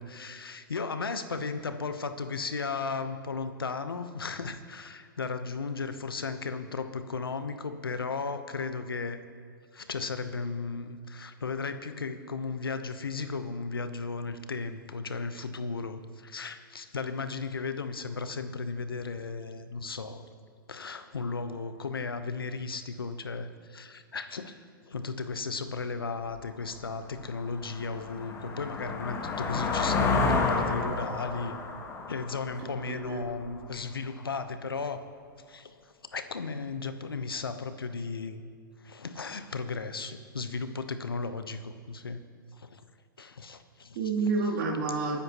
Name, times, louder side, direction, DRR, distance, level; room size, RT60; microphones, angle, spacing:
voice 1, 0.0-9.2 9.7-20.3 20.7-31.6 32.1-35.0 35.5-35.7 36.1-38.4 38.8-42.2 42.6-42.8 43.2-44.0, left 4 dB, 85° left, 9 dB, 1.0 m, -35 dB
sound 1, 26.4-26.5 27.0-33.5, left 4 dB, 20° left, 1.5 m, -30 dB
voice 2, 32.6-33.2 43.9-45.2, right 4 dB, 50° right, -5 dB, 3.1 m, -29 dB
25.0 x 10.0 x 3.0 m, 2.1 s
hypercardioid pair, 115°, 12 cm